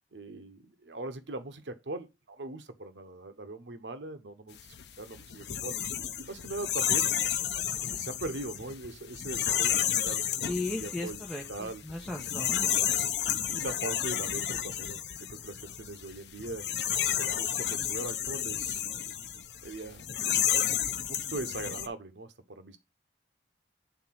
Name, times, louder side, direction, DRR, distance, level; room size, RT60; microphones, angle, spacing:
voice 1, 0.1-5.8 6.2-7.1 7.7-11.8 13.3-16.7 17.2-20.1 21.1-22.8, right 2 dB, 85° right, 0.9 m, -41 dB
sound 1, 4.6-21.9, left 10 dB, 70° left, 0.7 m, -31 dB
voice 2, 10.5-11.4 11.8-12.7, left 2 dB, ahead, 1.1 m, -35 dB
8.1 x 3.8 x 5.8 m
head